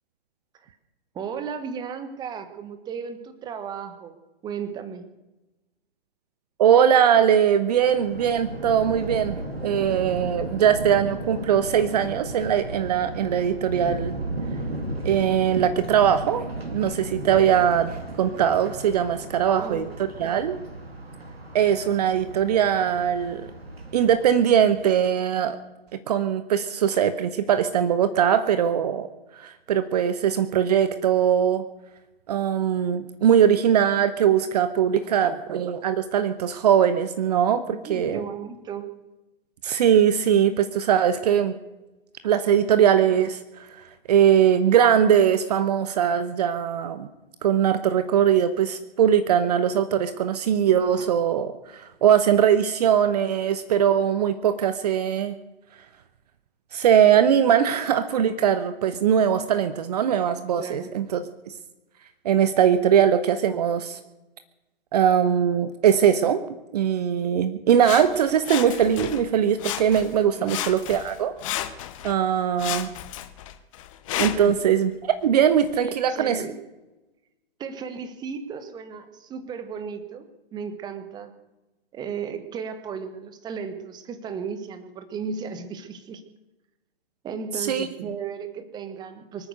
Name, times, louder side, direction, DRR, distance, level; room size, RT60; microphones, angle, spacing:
voice 1, 1.1-4.2 4.4-5.0 19.2-19.8 37.7-38.9 60.6-60.9 70.4-70.8 74.3-74.5 75.8-76.5 77.6-80.2 80.5-81.3 81.9-86.2 87.2-89.5, right 6 dB, 15° right, 10 dB, 1.3 m, -35 dB
voice 2, 6.6-14.2 15.0-16.5 16.7-19.9 20.2-20.6 21.5-23.5 23.9-25.6 26.1-29.1 29.4-31.6 32.3-38.2 39.6-41.6 42.2-47.1 47.4-55.3 56.7-61.2 61.5-61.6 62.2-64.0 64.9-66.4 66.7-71.3 72.0-72.9 74.2-76.4 87.6-87.9, right 9 dB, 40° right, 11 dB, 1.0 m, -21 dB
Thunder, 7.8-25.1, right 2 dB, 80° right, 2.8 m, -35 dB
Sawing, 67.8-69.3 69.6-70.2 70.5-72.2 72.6-74.6 75.2-75.3, left 12 dB, 35° left, 1.1 m, -33 dB
24.5 x 8.9 x 6.7 m, 1.0 s
figure-of-eight pair, 120°, 31 cm